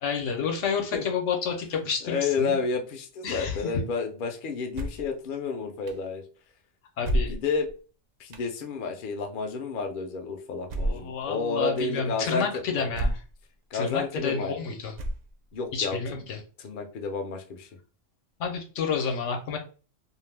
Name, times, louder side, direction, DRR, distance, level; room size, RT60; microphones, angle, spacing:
voice 1, 0.0-2.6 3.2-3.7 7.0-7.4 10.8-13.1 13.7-14.9 15.7-16.4 18.4-19.6, left 6 dB, 80° left, 3 dB, 1.0 m, -30 dB
voice 2, 2.0-6.2 7.0-7.7 8.2-12.9 13.7-14.6 15.5-16.2 16.6-17.7, left 4 dB, 55° left, 4 dB, 0.6 m, -31 dB
sound 1, 4.7-5.1 5.9-6.0 7.0-7.7 8.3-8.5 10.7-11.1 11.8-11.9 12.9-13.4 13.9-14.0 14.9-15.5, right 1 dB, 65° right, 0.4 m, -29 dB
2.5 x 2.1 x 3.2 m, 0.36 s
omnidirectional pair, 1.2 m